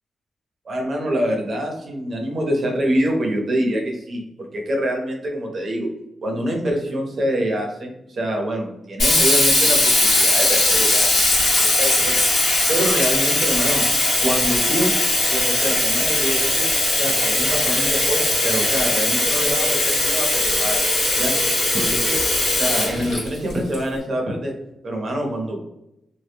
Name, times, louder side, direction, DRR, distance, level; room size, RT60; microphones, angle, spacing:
voice 1, 0.6-5.9 6.2-12.2 12.7-13.8 14.2-14.9 15.3-16.7 16.9-20.8 21.2-21.3 21.7-22.1 22.6-24.5 24.8-25.6, equal, 40° right, 1 dB, 0.7 m, -25 dB
Sink (filling or washing), 9.0-23.7, left 1 dB, 80° left, 1.4 m, -19 dB
2.9 x 2.2 x 3.3 m, 0.82 s
wide cardioid pair, 180°, 0 cm